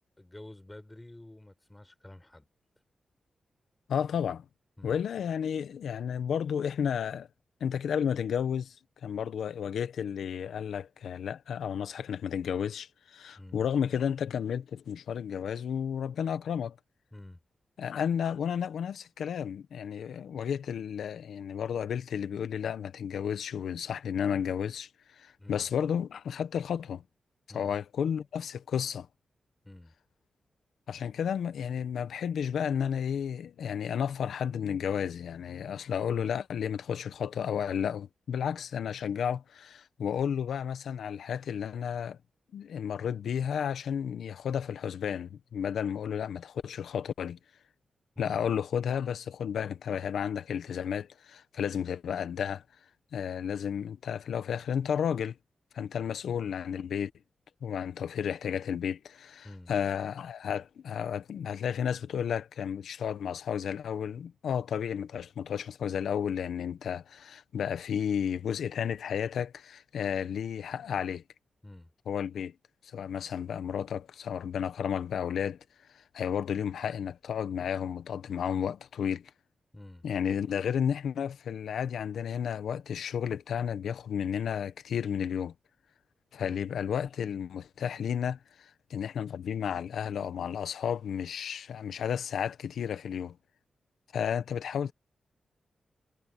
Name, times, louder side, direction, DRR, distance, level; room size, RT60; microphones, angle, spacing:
voice 1, 0.2-2.5 4.8-5.0 13.3-13.7 17.1-17.4 25.4-25.7 27.5-27.8 29.6-29.9 48.2-48.4 59.4-59.8 71.6-71.9 79.7-80.1 86.4-86.7, left 1 dB, 15° left, 5.9 m, -49 dB
voice 2, 3.9-4.4 4.8-7.3 7.6-8.8 9.0-16.7 17.8-27.0 27.5-29.1 30.9-42.2 42.5-47.4 48.2-52.6 53.1-55.4 55.7-57.1 57.6-71.2 72.1-72.5 72.8-75.6 75.9-79.2 80.0-85.5 86.3-93.4 94.1-94.9, left 8 dB, 85° left, 1.0 m, -32 dB
cardioid pair, 55°, 0 cm